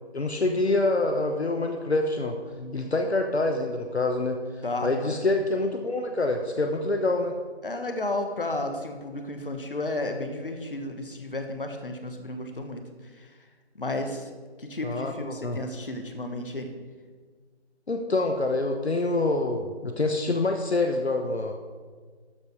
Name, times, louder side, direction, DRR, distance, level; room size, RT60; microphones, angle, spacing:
voice 1, 0.1-2.4 2.7-7.3 14.8-15.6 17.9-21.5, left 2 dB, 70° left, 4 dB, 1.1 m, -26 dB
voice 2, 2.5-2.9 4.6-5.1 7.6-13.4 13.7-14.3 14.6-16.7, left 2 dB, 55° left, 6 dB, 1.4 m, -33 dB
13.0 x 5.3 x 6.4 m, 1.5 s
figure-of-eight pair, 160°, 33 cm